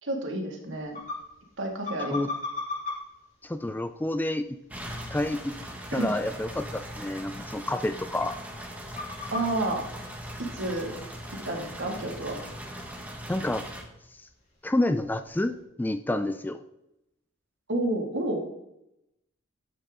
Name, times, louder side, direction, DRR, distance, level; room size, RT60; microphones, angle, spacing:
voice 1, 0.0-1.0 1.6-2.3 5.9-6.1 9.3-9.8 10.5-10.9 11.3-12.4 17.7-18.4, right 2 dB, 65° right, 1 dB, 2.1 m, -30 dB
sound 1, 0.6-15.6, left 3 dB, 40° left, 4.2 m, -43 dB
voice 2, 3.4-4.4 5.1-5.5 5.9-8.4 13.3-13.7 14.6-15.5 15.8-16.6, left 1 dB, 10° left, 10 dB, 0.3 m, -28 dB
sound 2, 4.7-13.8, equal, 5° right, 1.4 m, -40 dB
11.5 x 8.1 x 3.7 m, 0.86 s
head